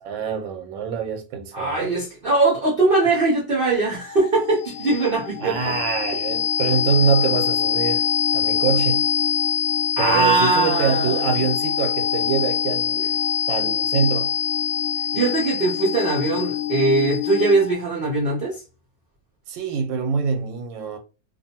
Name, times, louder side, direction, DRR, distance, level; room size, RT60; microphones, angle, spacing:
voice 1, 0.0-1.9 5.4-8.1 8.3-9.0 10.0-13.2 13.5-14.3 19.5-21.0, right 5 dB, 90° right, 1.3 m, -24 dB
voice 2, 1.5-5.7 10.0-11.3 15.1-18.6, right 3 dB, 50° right, 0.7 m, -21 dB
sound 1, 3.9-17.8, left 9 dB, 80° left, 1.2 m, -24 dB
2.7 x 2.5 x 2.7 m
omnidirectional pair, 2.0 m